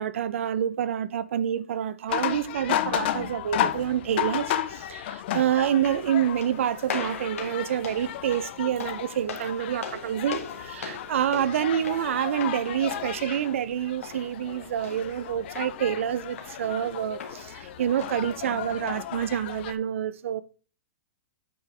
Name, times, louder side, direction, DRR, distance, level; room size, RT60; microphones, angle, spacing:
voice 1, 0.0-20.4, right 9 dB, 70° right, 0.6 m, -28 dB
sound 1, 2.1-19.7, left 12 dB, 50° left, 0.5 m, -34 dB
sound 2, 5.7-18.7, left 5 dB, 90° left, 2.0 m, -41 dB
8.5 x 5.5 x 3.3 m
hypercardioid pair, 140°, 7 cm